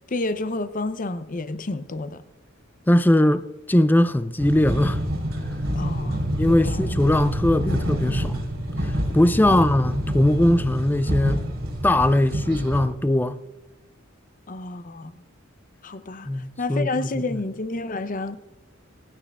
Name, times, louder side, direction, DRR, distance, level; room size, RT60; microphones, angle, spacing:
voice 1, 0.1-2.2 5.8-6.9 9.5-9.7 14.5-15.1 15.8-16.3 16.6-18.4, left 2 dB, 40° left, 0.7 m, -30 dB
voice 2, 2.9-5.0 6.4-8.4 8.8-11.4 11.8-13.4 16.3-17.4, left 1 dB, 10° left, 0.3 m, -20 dB
sound 1, 4.4-12.9, equal, 85° right, 3.0 m, -27 dB
26.0 x 9.2 x 2.4 m
head